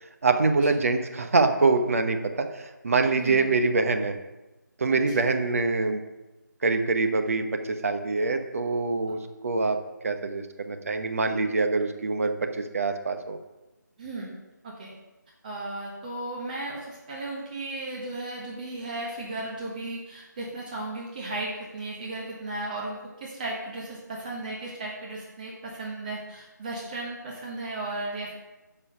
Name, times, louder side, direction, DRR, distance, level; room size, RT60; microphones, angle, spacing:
voice 1, 0.2-4.2 4.8-6.0 6.6-9.8 10.0-13.4, right 3 dB, 45° right, 6 dB, 1.0 m, -25 dB
voice 2, 14.0-14.3 14.6-14.9 15.4-28.4, right 2 dB, 25° right, -4 dB, 1.3 m, -35 dB
9.3 x 5.6 x 5.4 m, 1.1 s
figure-of-eight pair, 160°, 10 cm